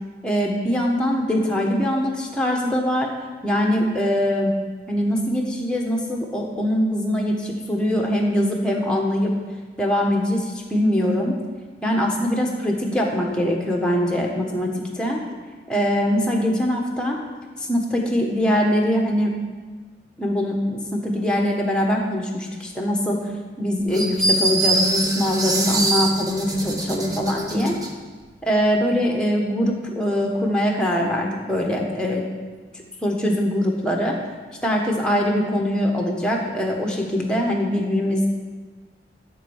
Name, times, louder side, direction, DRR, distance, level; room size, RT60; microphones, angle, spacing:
voice 1, 0.2-3.1 3.4-4.5 4.9-9.3 9.8-11.4 11.8-15.2 15.7-17.2 17.6-19.3 20.2-23.2 23.6-27.8 28.4-32.2 33.0-34.1 34.6-38.3, equal, 5° left, 0 dB, 1.4 m, -22 dB
sound 1, 23.9-27.9, right 2 dB, 20° right, 0.9 m, -24 dB
14.0 x 4.6 x 7.2 m, 1.4 s
head